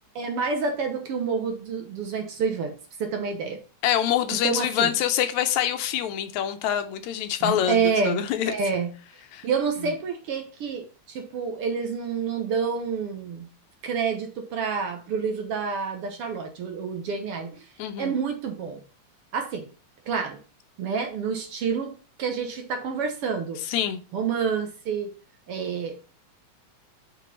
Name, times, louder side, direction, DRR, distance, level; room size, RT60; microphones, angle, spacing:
voice 1, 0.2-3.6 4.4-4.9 7.4-8.9 9.4-13.5 13.8-17.5 18.0-18.8 19.3-19.7 20.1-20.4 20.8-21.9 22.2-23.6 24.1-25.1 25.5-26.0, right 5 dB, 60° right, 1.7 m, -28 dB
voice 2, 3.8-8.5 9.3-9.5 17.8-18.1 23.7-24.0, left 10 dB, 80° left, 2.0 m, -25 dB
6.1 x 5.3 x 5.3 m
omnidirectional pair, 3.3 m